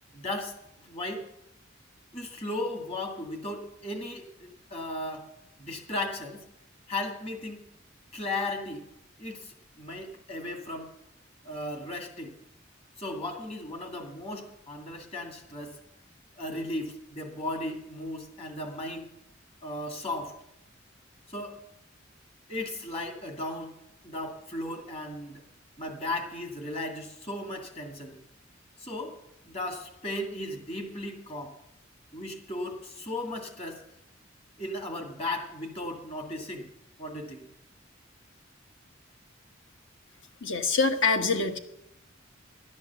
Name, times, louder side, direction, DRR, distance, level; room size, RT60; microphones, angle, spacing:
voice 1, 0.1-0.6 0.8-1.3 2.1-5.3 5.6-6.4 6.9-7.6 8.1-8.8 9.2-10.9 11.4-12.3 13.0-15.8 16.4-19.1 19.6-20.4 21.3-21.6 22.5-23.7 24.0-25.4 25.8-28.2 28.8-29.2 29.4-31.6 32.1-33.8 34.6-36.7 37.0-37.5, left 1 dB, 30° left, 4 dB, 2.0 m, -36 dB
voice 2, 40.4-41.6, left 4 dB, 70° left, 7 dB, 1.3 m, -25 dB
12.0 x 9.7 x 6.9 m, 0.82 s
head